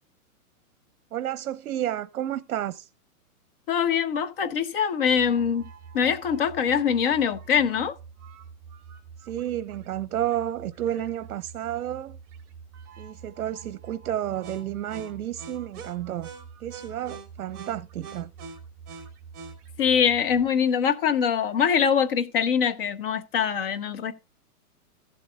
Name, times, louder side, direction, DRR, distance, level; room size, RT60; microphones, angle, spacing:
voice 1, 1.1-2.9 9.2-12.2 13.0-16.3 16.6-18.3, right 11 dB, 70° right, 0.7 m, -31 dB
voice 2, 3.7-5.6 5.9-7.9 19.8-24.1, left 7 dB, 40° left, 0.9 m, -23 dB
sound 1, 5.1-20.4, right 6 dB, 25° right, 2.4 m, -45 dB
15.0 x 7.7 x 2.3 m
hypercardioid pair, 165°, 44 cm